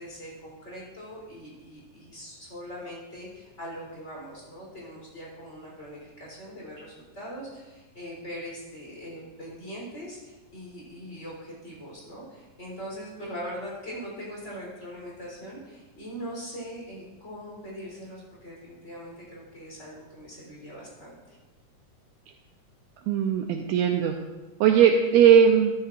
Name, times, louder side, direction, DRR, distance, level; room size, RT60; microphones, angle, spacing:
voice 1, 0.0-21.4, equal, 20° left, -4 dB, 3.7 m, -41 dB
voice 2, 23.1-24.2 24.6-25.7, right 8 dB, 80° right, 3 dB, 1.6 m, -19 dB
12.5 x 12.0 x 2.5 m, 1.2 s
omnidirectional pair, 3.7 m